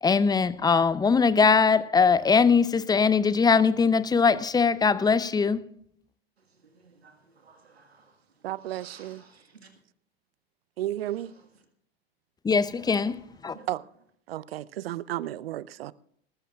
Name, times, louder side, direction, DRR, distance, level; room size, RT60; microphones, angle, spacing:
voice 1, 0.0-5.6 12.4-13.2 13.4-13.6, left 5 dB, 15° left, 0.6 m, -21 dB
voice 2, 6.7-8.2 8.7-9.7 12.7-12.9 13.5-13.7, right 5 dB, 85° right, 1.8 m, -54 dB
voice 3, 8.4-9.2 10.8-11.3 13.7-13.8 14.3-15.9, right 14 dB, 70° right, 0.6 m, -33 dB
19.0 x 14.5 x 2.4 m
hypercardioid pair, 85°, 31 cm